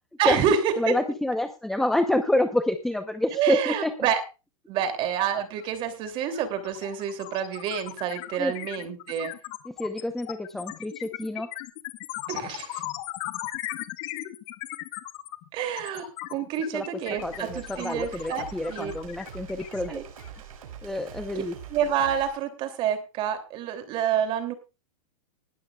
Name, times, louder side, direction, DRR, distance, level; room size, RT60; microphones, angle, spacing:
voice 1, 0.2-0.7 3.3-4.2 4.7-9.3 12.3-12.8 15.5-18.9 19.9-20.0 21.7-24.5, right 8 dB, 30° right, 8 dB, 2.8 m, -28 dB
voice 2, 0.8-3.9 8.4-8.5 9.7-11.5 16.7-16.9 17.2-20.0 20.8-21.6, left 1 dB, ahead, 7 dB, 0.8 m, -27 dB
sound 1, 5.6-5.7 6.0-20.4, left 17 dB, 35° left, 1.4 m, -38 dB
sound 2, 17.2-22.3, right 8 dB, 75° right, 5.5 m, -44 dB
20.0 x 13.0 x 2.4 m, 0.30 s
supercardioid pair, 165°, 18 cm